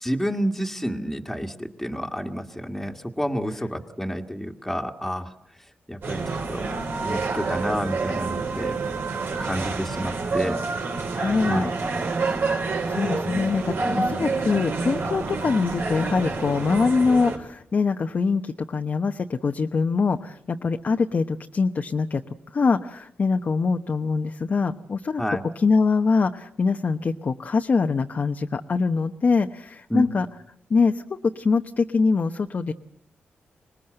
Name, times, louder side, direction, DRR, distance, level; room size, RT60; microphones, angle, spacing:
voice 1, 0.0-5.3 5.9-6.2 6.5-6.7 7.0-8.7 9.4-10.6 11.5-11.7 25.2-25.4 29.9-30.1, equal, 5° left, 2 dB, 1.8 m, -29 dB
sound 1, 6.0-17.4, right 3 dB, 75° right, 5.0 m, -28 dB
voice 2, 11.1-11.7 12.9-22.2 22.5-25.2 25.6-30.3 30.7-32.7, left 4 dB, 50° left, 5 dB, 0.9 m, -23 dB
25.5 x 20.0 x 7.8 m, 0.74 s
cardioid pair, 90°, 4 cm